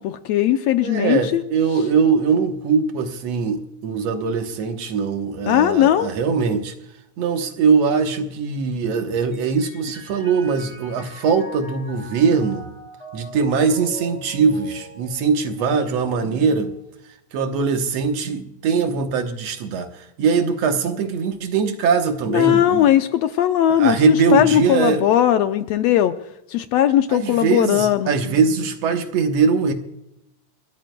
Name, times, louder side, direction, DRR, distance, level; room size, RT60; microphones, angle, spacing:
voice 1, 0.0-1.4 5.5-6.1 22.3-26.1 26.5-28.1, left 11 dB, 75° left, 8 dB, 1.6 m, -18 dB
voice 2, 0.8-6.7 7.2-12.7 13.1-16.7 17.3-22.9 23.7-25.0 27.1-29.7, right 5 dB, 65° right, 6 dB, 2.1 m, -21 dB
Mallet percussion, 9.3-17.0, right 1 dB, 35° left, 5.4 m, -42 dB
28.5 x 14.0 x 2.2 m, 0.83 s
omnidirectional pair, 3.4 m